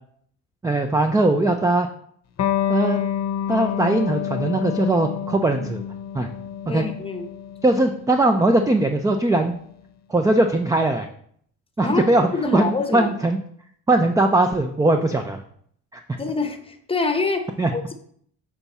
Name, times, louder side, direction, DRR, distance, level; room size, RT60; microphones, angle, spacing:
voice 1, 0.6-1.9 2.7-3.0 3.5-5.8 6.1-6.3 6.7-6.8 7.6-9.5 10.1-11.1 11.8-13.4 13.9-15.4 17.6-17.7, right 2 dB, 10° right, 6 dB, 0.4 m, -20 dB
Electric guitar, 2.4-9.5, left 9 dB, 45° left, 0.8 m, -28 dB
voice 2, 6.7-7.3 11.8-12.1 12.3-13.1 16.2-17.5 17.7-17.9, left 3 dB, 15° left, 6 dB, 0.8 m, -25 dB
6.9 x 3.5 x 4.1 m, 0.62 s
cardioid pair, 100°, 36 cm